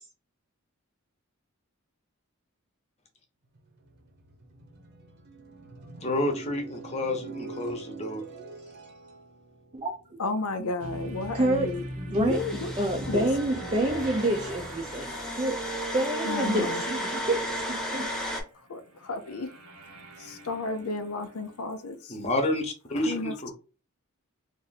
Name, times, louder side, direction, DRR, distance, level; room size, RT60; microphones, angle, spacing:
sound 1, 3.4-11.2 11.5-16.6, right 4 dB, 50° right, 0.9 m, -45 dB
voice 1, 6.0-8.2 22.1-23.5, left 1 dB, 30° left, 3 dB, 0.8 m, -29 dB
voice 2, 10.2-11.8 12.1-12.7 13.1-13.3 16.2-16.8 18.7-19.5 20.2-22.2 23.0-23.5, left 3 dB, 90° left, 9 dB, 0.5 m, -33 dB
sound 2, 10.8-21.7, equal, 85° right, 1.0 m, -43 dB
voice 3, 11.3-11.7 12.0-15.1 15.4-15.5 15.9-18.1, right 1 dB, 25° right, 1 dB, 0.4 m, -28 dB
sound 3, 12.3-18.4, equal, ahead, 0.8 m, -34 dB
2.7 x 2.5 x 4.0 m, 0.35 s
head